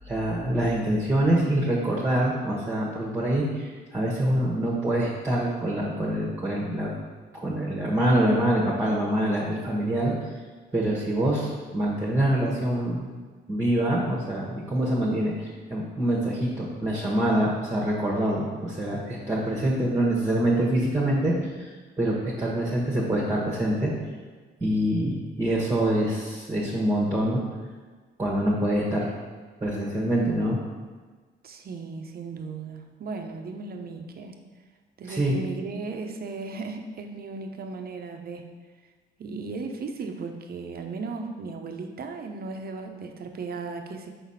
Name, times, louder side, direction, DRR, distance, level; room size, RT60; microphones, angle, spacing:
voice 1, 0.0-6.9 7.3-10.1 10.7-13.2 13.5-21.7 22.0-23.9 24.6-27.4 28.2-29.1 29.6-30.6 35.1-35.4, right 1 dB, 15° right, -4 dB, 1.2 m, -25 dB
voice 2, 31.4-34.4 35.0-38.5 39.2-44.1, right 4 dB, 50° right, 5 dB, 0.8 m, -36 dB
5.7 x 4.1 x 5.6 m, 1.4 s
cardioid pair, 90°, 20 cm